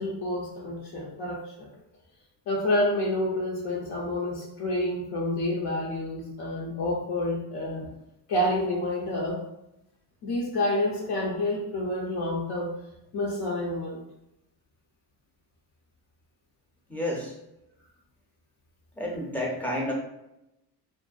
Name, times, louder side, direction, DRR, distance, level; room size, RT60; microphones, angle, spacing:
voice 1, 0.0-1.7 2.5-7.9 8.3-9.4 10.2-12.7 13.1-14.0, left 1 dB, 65° left, -3 dB, 0.6 m, -28 dB
voice 2, 16.9-17.3 19.0-19.9, left 1 dB, 5° left, -2 dB, 0.6 m, -30 dB
2.6 x 2.1 x 2.3 m, 0.87 s
cardioid pair, 105°, 42 cm